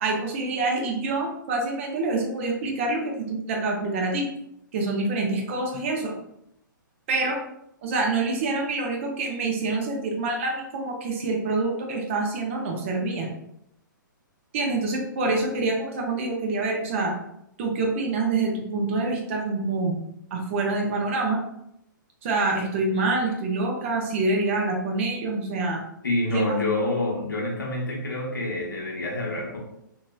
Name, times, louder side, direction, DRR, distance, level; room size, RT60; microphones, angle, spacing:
voice 1, 0.0-4.3 4.7-6.1 7.1-7.4 7.8-13.3 14.5-17.1 17.6-19.9 20.3-21.4 22.2-25.8 26.3-26.4, right 3 dB, 40° right, 0 dB, 0.7 m, -26 dB
voice 2, 26.0-29.6, left 2 dB, 75° left, -3 dB, 1.0 m, -27 dB
2.9 x 2.8 x 2.3 m, 0.80 s
figure-of-eight pair, 120°, 11 cm